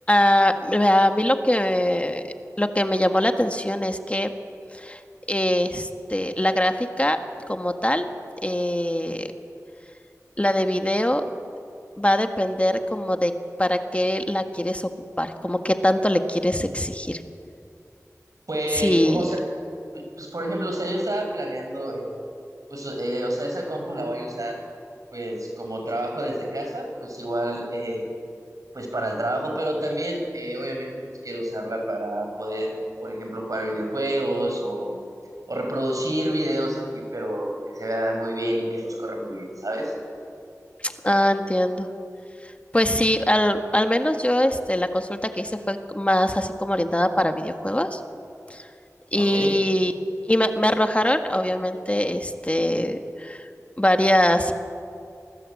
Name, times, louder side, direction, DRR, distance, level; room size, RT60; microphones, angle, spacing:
voice 1, 0.1-4.3 4.7-5.0 5.3-7.2 7.5-8.1 8.4-9.3 10.4-11.2 12.0-13.3 13.6-17.2 18.7-19.4 40.8-41.9 42.4-48.0 48.5-48.7 49.1-49.9 50.3-53.5 53.8-54.5, left 1 dB, 20° left, 6 dB, 1.6 m, -22 dB
voice 2, 18.5-19.4 19.9-22.2 22.7-24.6 25.1-28.1 28.7-34.9 35.5-40.0 49.2-49.5, right 1 dB, 75° right, 2 dB, 5.9 m, -28 dB
27.5 x 20.5 x 8.5 m, 2.5 s
wide cardioid pair, 45°, 6 cm